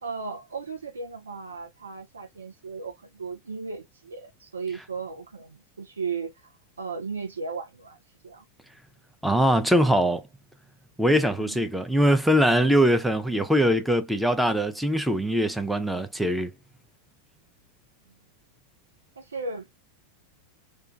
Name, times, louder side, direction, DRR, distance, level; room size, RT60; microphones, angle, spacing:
voice 1, 0.0-6.5 6.8-8.0 8.2-8.5 11.4-11.7 18.1-18.2 19.2-19.7, right 4 dB, 75° right, 0.5 m, -36 dB
voice 2, 9.2-10.2 11.0-16.5, equal, ahead, 0.4 m, -22 dB
2.2 x 2.2 x 2.5 m
figure-of-eight pair, 90°, 0 cm